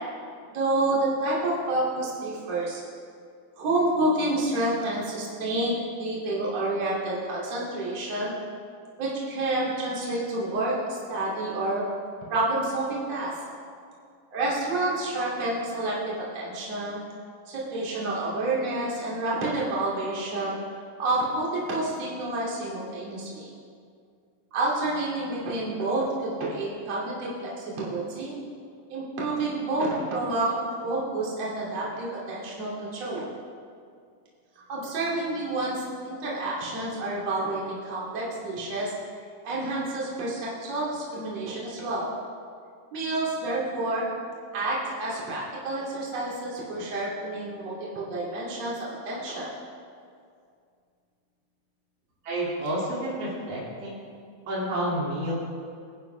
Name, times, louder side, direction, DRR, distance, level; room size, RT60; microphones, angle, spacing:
voice 1, 0.5-2.8 3.6-8.3 9.0-11.8 12.3-13.4 14.3-17.0 17.5-20.6 21.0-23.5 24.5-28.3 28.9-33.3 34.7-38.9 39.4-42.1 42.9-44.1 44.5-49.5, right 2 dB, 50° right, -6 dB, 3.8 m, -29 dB
voice 2, 52.2-54.0 54.5-55.3, right 1 dB, 75° right, -6 dB, 4.4 m, -29 dB
24.5 x 10.5 x 3.4 m, 2.3 s
omnidirectional pair, 4.0 m